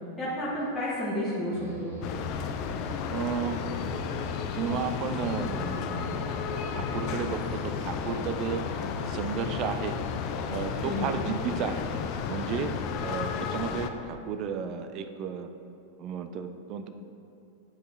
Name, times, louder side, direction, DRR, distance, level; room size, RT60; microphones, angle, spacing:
voice 1, 0.2-1.9 10.8-11.1, left 1 dB, 15° left, -9 dB, 1.3 m, -31 dB
sound 1, 1.5-13.2, equal, 70° right, 1.0 m, -42 dB
sound 2, 2.0-13.9, left 7 dB, 40° left, 0.4 m, -33 dB
voice 2, 3.1-3.6 4.0-4.2 4.5-6.3 6.7-8.7 9.0-10.0 10.5-11.9 12.3-12.7 13.0-15.5 16.0-16.9, right 6 dB, 35° right, 8 dB, 0.4 m, -33 dB
8.1 x 4.9 x 3.3 m, 2.6 s
figure-of-eight pair, 90°, 0 cm